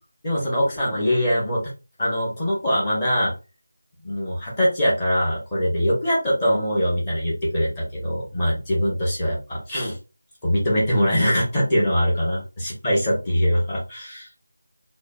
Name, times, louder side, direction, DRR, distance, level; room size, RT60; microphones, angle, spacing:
voice 1, 0.2-1.6 2.0-3.3 4.0-10.0 10.4-14.3, equal, 20° left, -6 dB, 1.0 m, -22 dB
3.1 x 2.3 x 2.2 m, 0.30 s
figure-of-eight pair, 170°, 0 cm